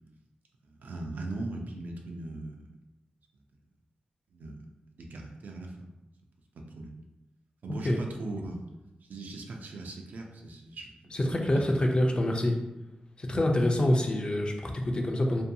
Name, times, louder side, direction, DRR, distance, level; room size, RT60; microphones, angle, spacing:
voice 1, 0.6-2.6 4.3-4.6 5.0-5.9 6.5-7.0 7.6-8.6 9.0-11.6 13.3-13.4, right 2 dB, 80° right, 2 dB, 0.4 m, -39 dB
voice 2, 11.1-12.6 13.2-15.4, left 1 dB, 35° left, 2 dB, 0.4 m, -26 dB
2.6 x 2.2 x 2.6 m, 0.97 s
wide cardioid pair, 90°, 3 cm